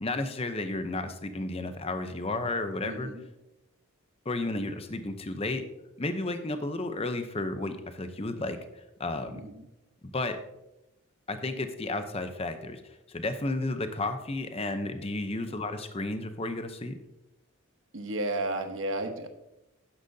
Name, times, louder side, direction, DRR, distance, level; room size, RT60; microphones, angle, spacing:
voice 1, 0.0-3.1 4.2-5.6 6.0-8.6 9.0-9.4 10.1-10.4 11.3-12.8 13.1-17.0, left 2 dB, 25° left, 8 dB, 0.7 m, -32 dB
voice 2, 2.8-3.2 9.3-9.7 15.5-15.6 17.9-19.3, right 1 dB, 60° right, 6 dB, 1.2 m, -33 dB
12.0 x 10.0 x 2.8 m, 0.92 s
head